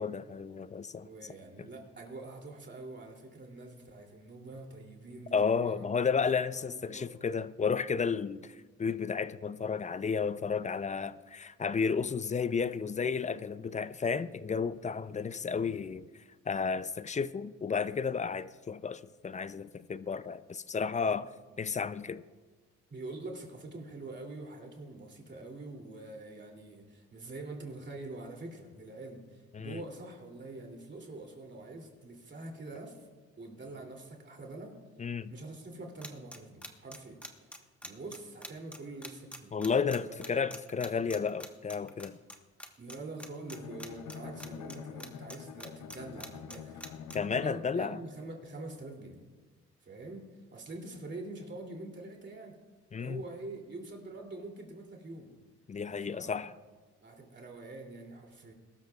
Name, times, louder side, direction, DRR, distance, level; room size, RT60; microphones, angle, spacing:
voice 1, 0.0-1.1 5.3-16.1 16.5-21.3 21.6-22.2 29.5-29.8 35.0-35.3 39.5-42.2 47.1-48.0 52.9-53.2 55.7-56.5, left 5 dB, 25° left, 0.4 m, -32 dB
voice 2, 1.0-5.9 6.2-7.1 21.1-21.2 22.9-33.1 33.4-34.8 35.3-39.5 40.0-40.2 42.8-46.8 47.4-49.2 49.8-50.2 50.5-52.6 53.0-55.3 56.0-56.6 57.0-58.5, right 2 dB, 35° right, 2.9 m, -45 dB
sound 1, 36.0-42.3 42.6-42.9 43.2-44.7 45.0-47.2, equal, 5° left, 1.2 m, -44 dB
Bowed string instrument, 43.5-47.9, left 7 dB, 80° left, 0.8 m, -45 dB
22.5 x 13.0 x 2.4 m
cardioid pair, 90°, 30 cm